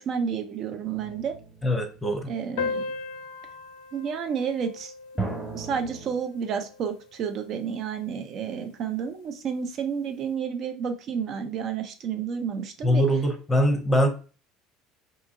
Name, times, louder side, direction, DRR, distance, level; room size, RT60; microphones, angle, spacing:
voice 1, 0.0-1.3 2.3-2.8 3.9-4.9 5.4-13.0, right 7 dB, 50° right, 7 dB, 0.5 m, -30 dB
sound 1, 0.8-2.6 5.2-6.1, right 3 dB, ahead, 1.3 m, -36 dB
voice 2, 1.6-2.3 12.8-14.1, equal, 20° left, 5 dB, 0.8 m, -22 dB
sound 2, 2.6-7.5, left 5 dB, 70° left, 0.4 m, -37 dB
2.7 x 2.4 x 2.6 m, 0.36 s
hypercardioid pair, 65°, 0 cm